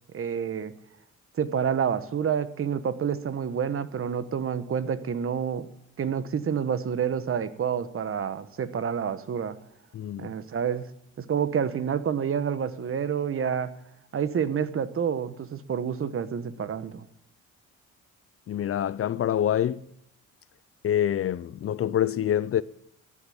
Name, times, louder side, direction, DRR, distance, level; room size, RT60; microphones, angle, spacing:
voice 1, 0.1-0.7 1.4-5.7 6.0-9.6 10.2-10.9 11.2-13.7 14.1-17.1, right 7 dB, 45° right, 1.1 m, -28 dB
voice 2, 9.9-10.3 18.5-19.8 20.8-22.6, left 10 dB, 50° left, 0.5 m, -26 dB
14.0 x 8.5 x 8.7 m
cardioid pair, 90°, 30 cm